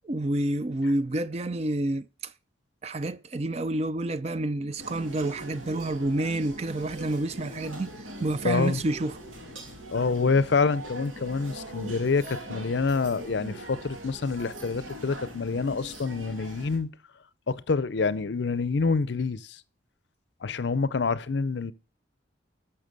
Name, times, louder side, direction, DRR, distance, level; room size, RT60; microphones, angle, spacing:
voice 1, 0.0-2.3 2.8-7.9 8.2-9.2, right 2 dB, 30° right, 0.4 m, -29 dB
sound 1, 4.8-16.8, right 1 dB, 85° right, 2.9 m, -41 dB
voice 2, 8.4-8.8 9.9-16.9 17.5-19.6 20.4-21.7, left 4 dB, 60° left, 0.5 m, -27 dB
12.5 x 5.9 x 5.2 m
head